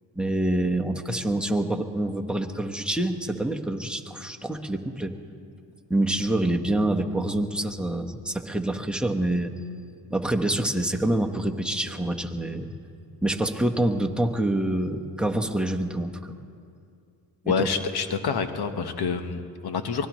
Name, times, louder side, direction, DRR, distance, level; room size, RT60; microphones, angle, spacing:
voice 1, 0.1-5.2 5.9-9.5 10.1-12.7 13.2-16.1 17.4-17.7, right 1 dB, ahead, 2 dB, 1.3 m, -26 dB
voice 2, 17.5-20.1, left 6 dB, 65° left, 8 dB, 1.3 m, -27 dB
24.0 x 18.5 x 3.2 m, 2.5 s
cardioid pair, 65°, 41 cm